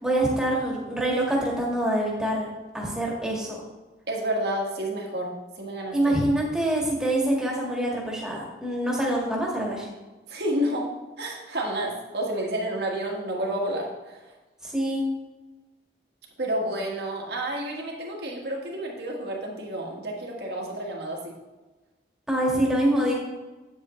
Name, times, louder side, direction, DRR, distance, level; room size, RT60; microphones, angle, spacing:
voice 1, 0.0-2.5 2.7-3.6 5.9-9.9 14.6-15.0 22.3-23.1, right 1 dB, 5° right, -3 dB, 1.7 m, -25 dB
voice 2, 4.1-6.0 10.3-10.9 11.2-14.2 16.4-21.3, right 1 dB, 65° right, -1 dB, 1.7 m, -30 dB
8.7 x 8.0 x 3.2 m, 1.2 s
head